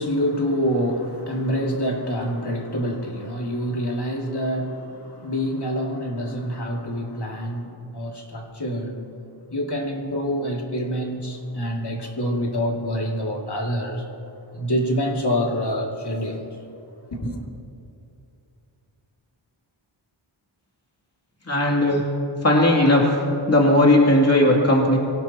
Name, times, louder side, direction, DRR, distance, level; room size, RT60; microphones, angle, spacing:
voice 1, 0.0-9.0 9.5-14.1 14.5-16.5 17.1-17.4, equal, 50° left, -1 dB, 2.6 m, -26 dB
voice 2, 21.5-22.0 22.4-23.1 23.5-25.0, left 1 dB, 30° left, -2 dB, 2.8 m, -17 dB
25.5 x 18.0 x 3.0 m, 2.7 s
wide cardioid pair, 70°, 50 cm